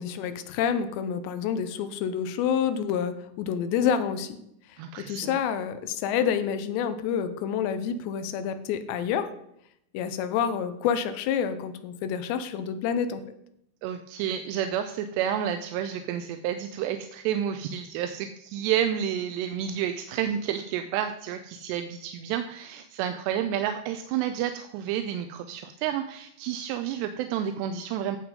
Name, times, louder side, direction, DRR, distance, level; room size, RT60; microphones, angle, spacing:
voice 1, 0.0-4.4 4.7-9.3 9.9-13.2, left 8 dB, 80° left, 11 dB, 2.9 m, -28 dB
voice 2, 4.8-5.4 13.8-28.2, right 9 dB, 80° right, 9 dB, 2.6 m, -30 dB
12.0 x 7.7 x 5.2 m, 0.76 s
omnidirectional pair, 5.3 m